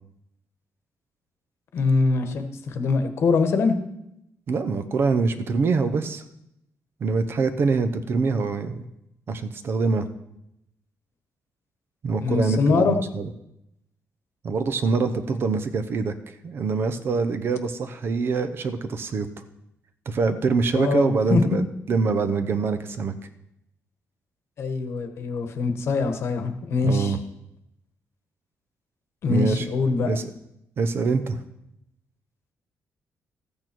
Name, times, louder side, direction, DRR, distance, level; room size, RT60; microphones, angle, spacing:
voice 1, 1.7-3.8 12.2-13.0 20.7-21.6 24.6-27.2 29.2-30.1, left 4 dB, 55° left, 7 dB, 1.2 m, -23 dB
voice 2, 4.5-6.2 7.0-8.9 9.3-10.1 12.0-13.3 14.4-16.1 16.4-19.3 20.1-23.1 26.8-27.2 29.3-29.7 30.0-30.3 30.8-31.4, right 4 dB, 45° right, 10 dB, 0.8 m, -24 dB
14.0 x 8.6 x 4.5 m, 0.82 s
cardioid pair, 160°, 5 cm